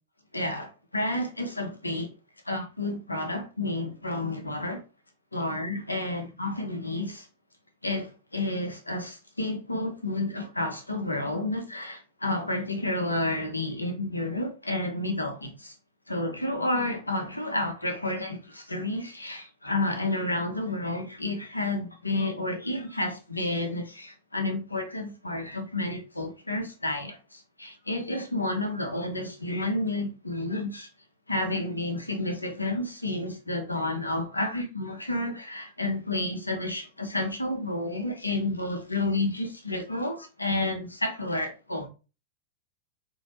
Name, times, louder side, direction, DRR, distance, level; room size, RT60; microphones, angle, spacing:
voice 1, 0.3-2.1 2.5-4.8 5.3-7.3 7.8-15.7 16.1-30.9 31.3-41.9, left 2 dB, 85° left, 0.8 m, -30 dB
4.0 x 2.7 x 3.0 m
figure-of-eight pair, 90°, 0 cm